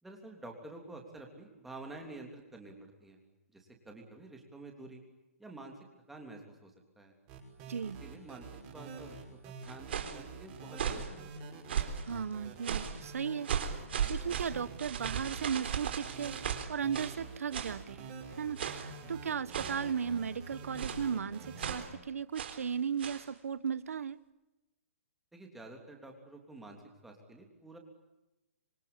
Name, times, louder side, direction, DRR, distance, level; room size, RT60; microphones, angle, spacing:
voice 1, 0.0-3.2 3.5-5.0 5.4-5.7 6.1-6.7 7.0-7.1 8.0-8.5 8.7-11.5 25.3-27.8, right 2 dB, 5° right, 2 dB, 3.3 m, -49 dB
sound 1, 7.3-21.9, right 4 dB, 20° right, 5.9 m, -47 dB
voice 2, 7.7-8.0 12.1-13.5 14.1-16.3 16.7-24.2, right 7 dB, 80° right, 16 dB, 1.3 m, -36 dB
sound 2, 9.6-10.2 10.7-11.1 11.7-12.1 12.6-13.0 13.4-17.2 17.5-17.8 18.6-18.9 19.5-19.9 20.8-21.1 21.6-21.9 22.3-22.6 23.0-23.3, right 8 dB, 50° right, 3.8 m, -36 dB
26.5 x 26.0 x 8.7 m, 1.0 s
hypercardioid pair, 175°, 8 cm